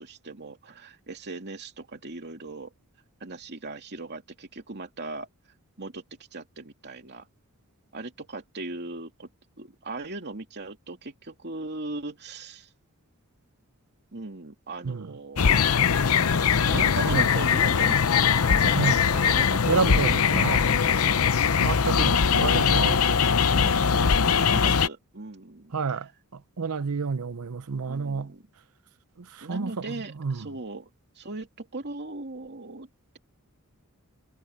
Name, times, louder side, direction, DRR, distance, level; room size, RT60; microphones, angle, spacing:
voice 1, 0.0-2.7 3.2-5.3 5.8-6.0 6.3-7.3 7.9-9.3 9.6-12.7 14.1-15.8 16.7-21.2 21.8-26.0 27.9-28.5 29.4-30.9 31.1-32.9, right 2 dB, 50° right, 2.8 m, -39 dB
sound 1, 15.4-24.9, left 6 dB, 75° left, 0.7 m, -21 dB
voice 2, 19.7-20.6 21.6-22.9 25.7-28.3 29.2-30.4, right 5 dB, 85° right, 0.7 m, -29 dB
head